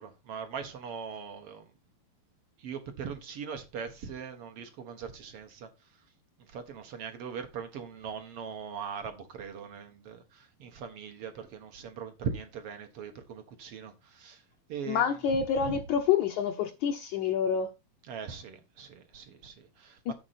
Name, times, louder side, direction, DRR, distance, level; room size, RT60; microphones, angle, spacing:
voice 1, 0.0-1.7 2.6-5.7 6.4-14.4 14.7-15.0 15.6-15.8 18.1-20.1, right 6 dB, 70° right, 1.4 m, -40 dB
voice 2, 14.9-17.7, left 7 dB, 75° left, 1.8 m, -27 dB
9.6 x 7.7 x 4.2 m
omnidirectional pair, 4.5 m